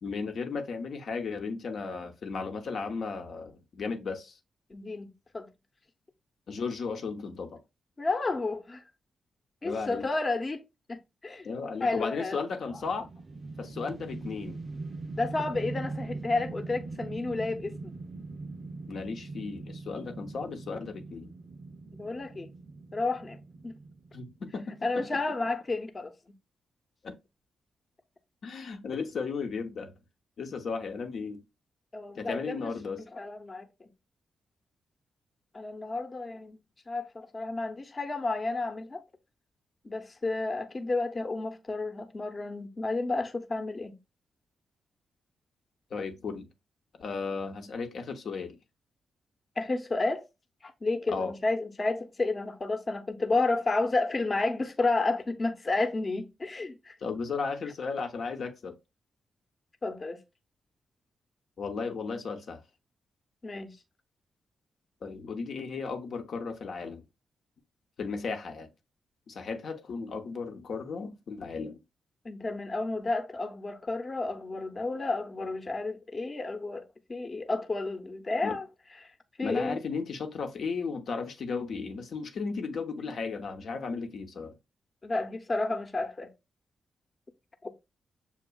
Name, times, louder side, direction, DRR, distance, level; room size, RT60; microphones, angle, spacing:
voice 1, 0.0-4.4 6.5-7.6 9.6-10.1 11.4-13.1 13.6-14.6 18.9-21.3 24.1-25.1 27.0-27.1 28.4-29.9 30.4-31.4 32.2-33.0 45.9-46.5 47.0-48.6 51.1-51.4 57.0-58.8 61.6-62.6 65.0-67.0 68.0-68.7 69.3-71.8 78.4-78.6 79.4-84.5, left 4 dB, 70° left, 0.8 m, -35 dB
voice 2, 4.7-5.5 8.0-8.8 9.6-10.6 10.9-11.5 11.8-12.4 15.2-17.9 21.9-22.5 22.9-23.4 23.6-23.8 24.8-26.1 31.9-32.7 33.1-33.7 35.5-36.6 36.9-39.0 39.8-43.9 49.6-50.2 50.6-56.9 59.8-60.2 63.4-63.8 72.2-78.7 79.4-79.8 85.0-86.3 87.6-87.7, left 3 dB, 40° left, 0.9 m, -31 dB
sound 1, 12.6-24.8, right 3 dB, 50° right, 0.5 m, -41 dB
7.0 x 2.3 x 2.3 m
supercardioid pair, 50°, 0 cm